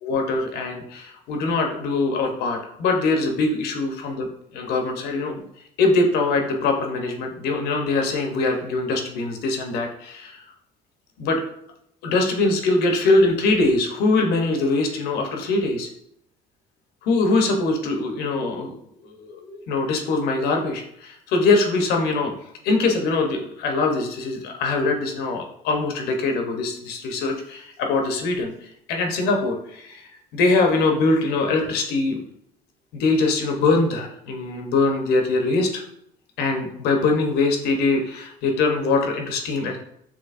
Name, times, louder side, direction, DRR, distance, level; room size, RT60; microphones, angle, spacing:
voice 1, 0.0-5.4 5.8-10.4 11.2-11.4 12.0-15.9 17.0-18.7 19.0-22.3 22.6-32.2 32.9-35.8 36.4-39.8, left 3 dB, 70° left, 3 dB, 0.8 m, -22 dB
6.5 x 2.9 x 2.5 m, 0.73 s
cardioid pair, 165°, 17 cm